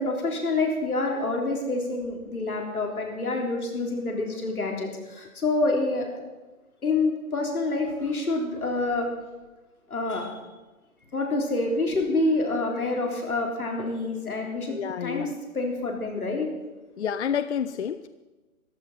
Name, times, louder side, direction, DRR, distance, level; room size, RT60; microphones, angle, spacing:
voice 1, 0.0-6.1 6.8-9.1 9.9-10.5 11.1-15.3 15.5-16.5, left 2 dB, 85° left, 1 dB, 3.8 m, -27 dB
voice 2, 14.7-15.3 17.0-18.1, left 8 dB, 55° left, 13 dB, 0.5 m, -29 dB
14.0 x 11.5 x 5.6 m, 1.2 s
hypercardioid pair, 150°, 43 cm